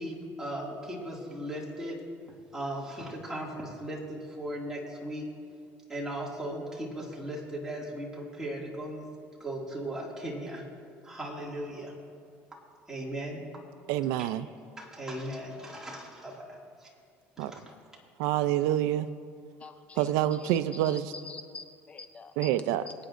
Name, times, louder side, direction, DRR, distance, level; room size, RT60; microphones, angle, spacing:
voice 1, 0.0-2.0 2.5-5.3 5.9-9.1 9.4-10.7 11.0-11.9 12.9-13.4 14.8-16.9 17.4-17.8, right 1 dB, 10° right, -4 dB, 2.2 m, -37 dB
voice 2, 13.9-14.5 17.4-17.5 18.2-19.1 20.0-21.1 22.4-22.8, right 12 dB, 90° right, 13 dB, 0.4 m, -27 dB
voice 3, 19.6-22.5 22.9-23.0, left 3 dB, 25° left, 8 dB, 0.4 m, -46 dB
23.5 x 9.0 x 2.5 m, 2.3 s
cardioid pair, 140°, 5 cm